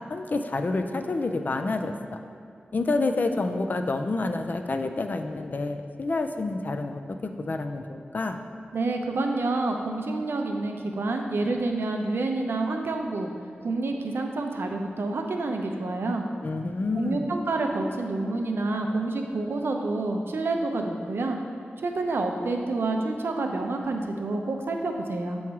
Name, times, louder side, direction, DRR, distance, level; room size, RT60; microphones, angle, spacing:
voice 1, 0.1-1.9 2.7-8.4 16.4-17.3, left 3 dB, 50° left, 6 dB, 0.4 m, -28 dB
voice 2, 8.7-13.3 13.6-16.2 16.9-21.4 21.8-25.4, right 2 dB, 80° right, 3 dB, 0.5 m, -28 dB
7.0 x 3.1 x 4.6 m, 2.5 s
wide cardioid pair, 90°, 4 cm